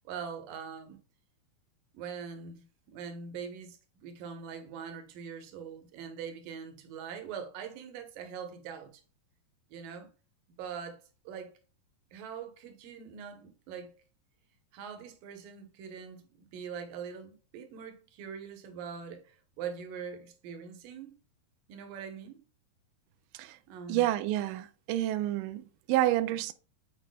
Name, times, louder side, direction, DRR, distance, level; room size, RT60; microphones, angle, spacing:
voice 1, 0.0-1.0 1.9-9.0 9.7-10.1 10.5-11.6 12.1-14.0 14.7-21.2 21.7-22.4 23.7-24.1, right 6 dB, 70° right, 2.5 m, -43 dB
voice 2, 23.9-25.6 25.9-26.5, right 14 dB, 90° right, 1.9 m, -29 dB
9.3 x 4.8 x 2.2 m
omnidirectional pair, 4.3 m